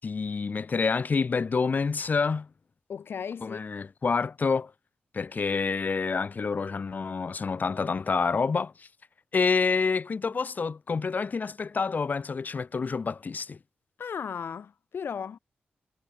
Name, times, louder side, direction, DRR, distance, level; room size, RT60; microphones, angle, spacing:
voice 1, 0.0-2.5 3.4-4.7 5.1-8.9 9.3-13.6, left 5 dB, 50° left, 0.9 m, -28 dB
voice 2, 2.9-3.6 14.0-15.4, left 7 dB, 75° left, 4.8 m, -35 dB
cardioid pair, 65°, 4 cm